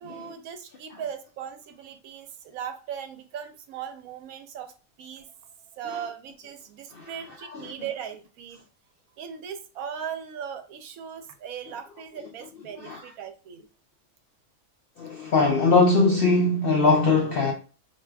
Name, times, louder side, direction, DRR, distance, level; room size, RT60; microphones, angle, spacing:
voice 1, 0.0-4.7 5.0-5.3 5.7-8.6 9.2-13.7, right 8 dB, 75° right, 1.0 m, -38 dB
voice 2, 15.0-17.5, left 3 dB, 70° left, 0.5 m, -21 dB
4.4 x 2.6 x 2.3 m
omnidirectional pair, 1.5 m